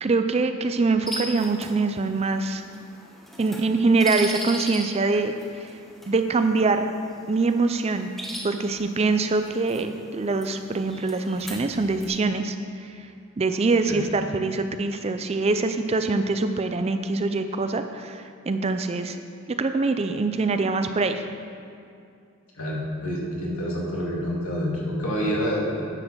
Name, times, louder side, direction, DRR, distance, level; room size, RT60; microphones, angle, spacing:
voice 1, 0.0-2.6 3.4-5.7 6.1-6.9 7.3-8.1 8.4-12.6 13.4-19.2 19.5-21.2, right 3 dB, 30° right, 8 dB, 0.4 m, -24 dB
sound 1, 1.1-12.1, equal, ahead, 1.0 m, -39 dB
voice 2, 22.6-25.8, equal, 75° left, -3 dB, 2.2 m, -27 dB
9.8 x 6.2 x 6.2 m, 2.4 s
head